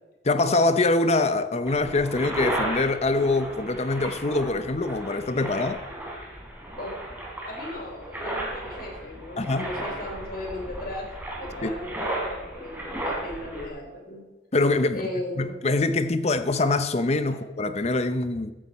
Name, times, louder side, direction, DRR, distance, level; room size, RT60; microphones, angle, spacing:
voice 1, 0.2-5.8 9.4-9.7 11.6-11.7 14.5-15.1 15.4-18.5, left 2 dB, 35° left, 0.7 m, -24 dB
sound 1, 1.7-13.7, right 1 dB, 10° right, 3.3 m, -34 dB
voice 2, 7.4-11.1 11.4-14.2 14.9-15.6 17.3-17.4, left 1 dB, 55° left, 3.9 m, -36 dB
15.0 x 10.0 x 4.2 m
head